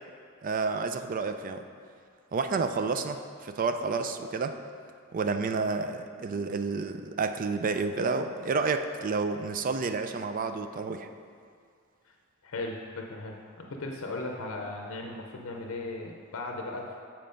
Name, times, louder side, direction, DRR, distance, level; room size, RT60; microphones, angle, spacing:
voice 1, 0.4-1.6 2.3-4.6 5.1-11.1, right 4 dB, 40° right, 8 dB, 0.4 m, -30 dB
voice 2, 12.4-17.0, left 2 dB, 75° left, 1 dB, 0.6 m, -37 dB
7.6 x 4.4 x 5.2 m, 2.2 s
head